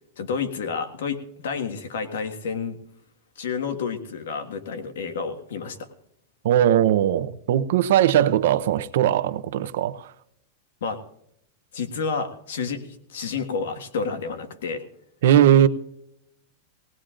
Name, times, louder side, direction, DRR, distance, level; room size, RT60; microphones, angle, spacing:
voice 1, 0.2-2.8 3.3-5.9 10.8-11.0 11.7-14.9, left 5 dB, 85° left, 1.6 m, -30 dB
voice 2, 6.4-10.1 15.2-15.7, right 10 dB, 65° right, 0.7 m, -19 dB
19.5 x 18.5 x 2.5 m
supercardioid pair, 160°, 0 cm